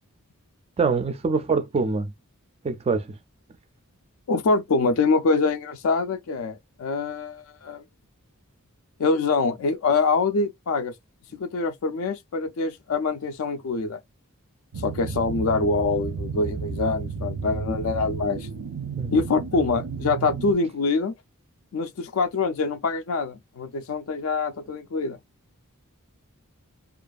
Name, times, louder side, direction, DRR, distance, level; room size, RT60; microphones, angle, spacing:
voice 1, 0.8-2.1 2.6-3.2 19.0-19.1, right 4 dB, 25° right, 0.3 m, -24 dB
voice 2, 4.3-7.8 9.0-10.9 11.3-14.0 14.8-18.5 19.1-21.1 21.7-25.2, left 4 dB, 65° left, 0.4 m, -25 dB
sound 1, 14.7-20.5, right 5 dB, 90° right, 0.5 m, -32 dB
2.5 x 2.3 x 2.3 m
head